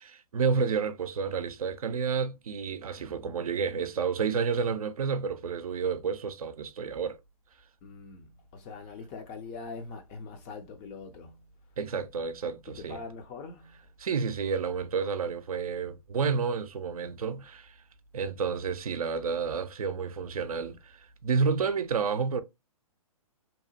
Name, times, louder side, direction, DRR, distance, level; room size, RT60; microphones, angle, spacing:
voice 1, 0.0-7.2 11.8-13.0 14.0-17.7 18.1-22.4, right 5 dB, 70° right, 0.5 m, -30 dB
voice 2, 7.8-11.4 12.7-13.9, left 4 dB, 20° left, 0.4 m, -43 dB
2.8 x 2.1 x 2.6 m
figure-of-eight pair, 125°, 19 cm